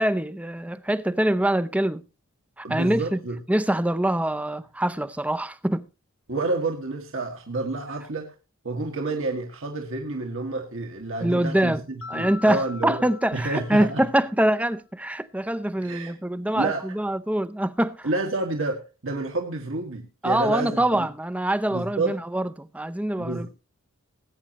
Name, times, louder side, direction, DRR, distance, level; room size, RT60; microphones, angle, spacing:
voice 1, 0.0-2.0 2.6-3.2 3.5-5.8 11.2-11.8 12.1-18.1 20.2-23.5, right 1 dB, 5° right, 0.5 m, -24 dB
voice 2, 2.6-3.4 6.3-8.3 8.6-13.0 13.3-14.0 15.8-16.2 16.5-16.9 18.0-21.1 21.7-22.2 23.2-23.5, right 2 dB, 65° right, 1.9 m, -29 dB
Mallet percussion, 12.0-14.4, left 4 dB, 60° left, 0.7 m, -42 dB
20.0 x 8.9 x 3.0 m
head